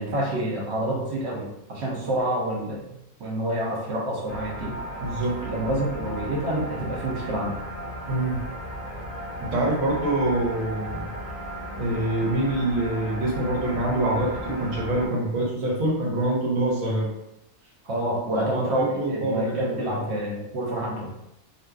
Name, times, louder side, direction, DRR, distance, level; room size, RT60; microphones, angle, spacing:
voice 1, 0.0-4.8 5.4-7.6 17.8-21.1, right 1 dB, 60° right, -2 dB, 0.9 m, -28 dB
sound 1, 4.3-15.1, equal, 25° left, 0.4 m, -35 dB
voice 2, 5.0-5.4 8.1-8.4 9.5-11.1 11.8-17.1 18.3-20.0, right 1 dB, 85° right, -2 dB, 1.2 m, -25 dB
2.7 x 2.4 x 2.3 m, 0.83 s
omnidirectional pair, 1.4 m